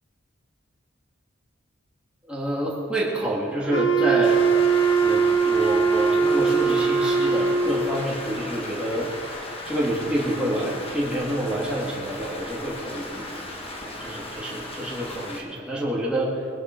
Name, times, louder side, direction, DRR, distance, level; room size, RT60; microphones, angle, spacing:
voice 1, 2.3-4.4 5.0-9.1 9.7-13.5 13.8-16.5, right 1 dB, 5° right, -6 dB, 2.5 m, -28 dB
Wind instrument woodwind instrument, 3.7-8.0, right 5 dB, 70° left, 1.1 m, -21 dB
Rain, 4.2-15.4, left 1 dB, 30° left, 1.7 m, -36 dB
21.5 x 10.5 x 4.6 m, 2.4 s
head